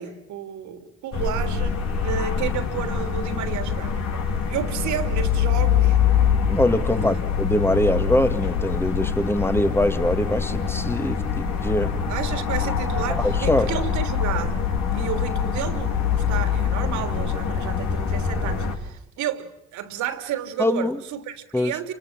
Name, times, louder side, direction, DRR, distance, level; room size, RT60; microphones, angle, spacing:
voice 1, 0.0-6.0 6.9-7.2 12.1-14.6 14.9-21.9, right 9 dB, 70° right, 3.1 m, -32 dB
sound 1, 1.1-18.8, left 7 dB, 60° left, 5.0 m, -24 dB
voice 2, 6.5-12.0 13.1-13.7 20.6-21.0 21.5-21.7, left 1 dB, 10° left, 2.2 m, -23 dB
29.0 x 24.5 x 7.5 m
hypercardioid pair, 55°, 31 cm